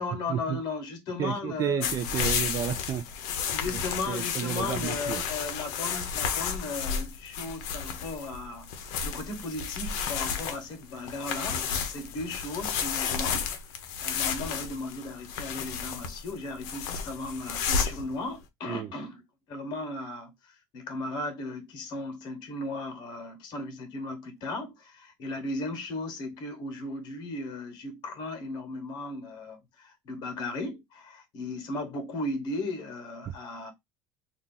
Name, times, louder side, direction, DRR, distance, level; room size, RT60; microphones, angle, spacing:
voice 1, 0.0-1.9 3.5-13.5 14.0-19.2 19.5-33.7, left 2 dB, 55° left, 1.2 m, -36 dB
voice 2, 1.2-3.4 3.7-5.2 18.7-18.9 33.3-33.4, right 9 dB, 35° right, 0.4 m, -32 dB
sound 1, 1.8-18.1, left 6 dB, 75° left, 0.7 m, -32 dB
2.7 x 2.5 x 3.7 m
cardioid pair, 135°, 9 cm